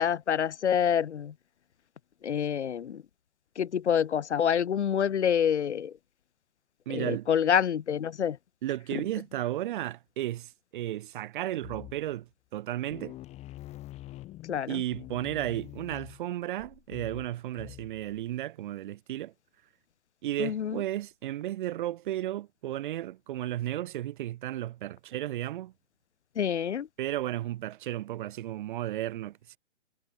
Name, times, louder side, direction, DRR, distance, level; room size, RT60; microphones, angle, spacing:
voice 1, 0.0-1.3 2.2-3.0 3.6-5.9 6.9-8.4 8.9-9.0 14.5-14.8 20.4-20.8 26.4-26.9, left 8 dB, 65° left, 1.1 m, -27 dB
voice 2, 6.9-7.3 8.6-13.2 14.7-19.3 20.2-25.7 27.0-29.6, right 14 dB, 40° right, 2.4 m, -34 dB
sound 1, 11.6-12.2 12.6-12.7 12.9-18.2, left 16 dB, 20° left, 1.5 m, -45 dB
figure-of-eight pair, 135°, 37 cm